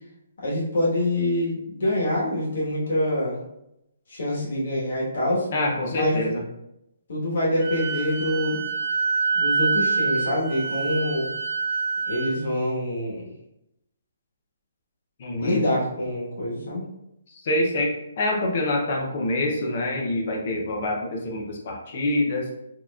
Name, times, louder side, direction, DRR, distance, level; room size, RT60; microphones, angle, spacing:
voice 1, 0.4-3.4 4.1-5.5 5.9-6.1 7.1-8.6 9.3-11.3 12.1-13.3 15.4-16.8, left 1 dB, 55° left, -5 dB, 1.4 m, -25 dB
voice 2, 5.5-6.4 15.2-15.6 17.3-22.5, left 1 dB, 35° left, 0 dB, 0.6 m, -26 dB
Wind instrument woodwind instrument, 7.6-12.3, right 4 dB, 40° right, 0.9 m, -26 dB
4.3 x 2.9 x 2.3 m, 0.85 s
hypercardioid pair, 180°, 0 cm